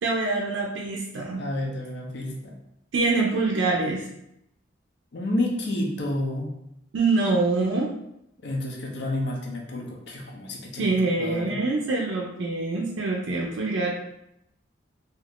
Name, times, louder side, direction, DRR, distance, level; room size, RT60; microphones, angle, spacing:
voice 1, 0.0-1.4 2.9-4.1 6.9-7.9 10.8-13.9, right 3 dB, 70° right, -1 dB, 0.4 m, -25 dB
voice 2, 1.4-2.5 5.1-6.5 8.4-10.9 11.2-11.6, left 1 dB, 60° left, 0 dB, 0.5 m, -30 dB
2.8 x 2.4 x 3.4 m, 0.80 s
head